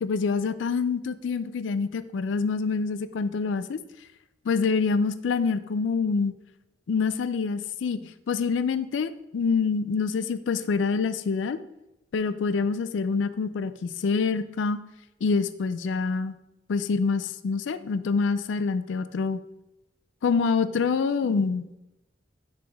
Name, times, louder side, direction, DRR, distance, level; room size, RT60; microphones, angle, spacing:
voice 1, 0.0-3.8 4.5-6.3 6.9-11.6 12.1-14.8 15.2-16.4 16.7-19.4 20.2-21.8, left 5 dB, 80° left, 13 dB, 0.4 m, -26 dB
9.9 x 3.3 x 3.4 m, 0.91 s
head